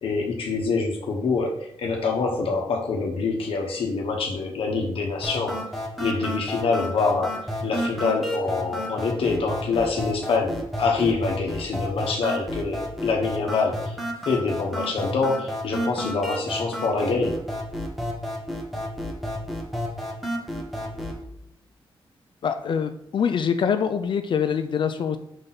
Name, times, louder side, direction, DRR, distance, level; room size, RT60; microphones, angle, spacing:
voice 1, 0.0-5.6 6.0-7.4 7.6-14.0 14.3-17.4, left 4 dB, 80° left, 0 dB, 1.0 m, -25 dB
sound 1, 5.2-21.2, equal, ahead, 1.1 m, -31 dB
voice 2, 22.4-25.2, left 7 dB, 60° left, 8 dB, 0.4 m, -24 dB
5.1 x 4.0 x 5.8 m, 0.74 s
wide cardioid pair, 125°, 9 cm